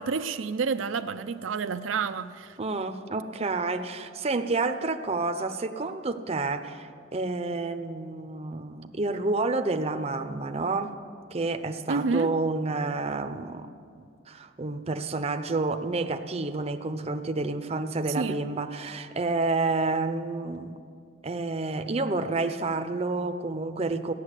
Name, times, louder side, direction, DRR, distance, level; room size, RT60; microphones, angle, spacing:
voice 1, 0.0-2.6 11.9-12.3 18.2-18.4, right 4 dB, 85° right, 0.5 m, -29 dB
voice 2, 2.6-11.0 11.3-13.7 14.3-20.7 21.2-24.1, right 3 dB, 30° right, 0.6 m, -29 dB
15.5 x 10.5 x 8.2 m
head